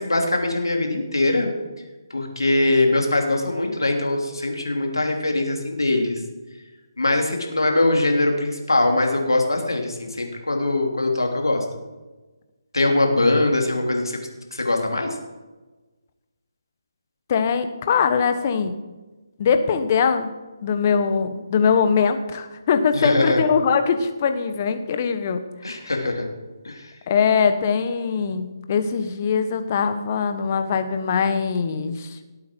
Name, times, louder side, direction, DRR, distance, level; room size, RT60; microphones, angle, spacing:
voice 1, 0.0-1.5 2.1-6.2 7.0-11.6 12.7-14.2 14.5-15.1 22.9-23.4 25.6-26.2 26.6-26.9, left 2 dB, 90° left, 2 dB, 3.0 m, -22 dB
voice 2, 17.3-18.7 19.4-20.3 20.6-25.4 25.8-25.9 27.1-32.2, left 6 dB, 35° left, 9 dB, 1.2 m, -22 dB
19.0 x 8.6 x 4.6 m, 1.2 s
figure-of-eight pair, 155°, 2 cm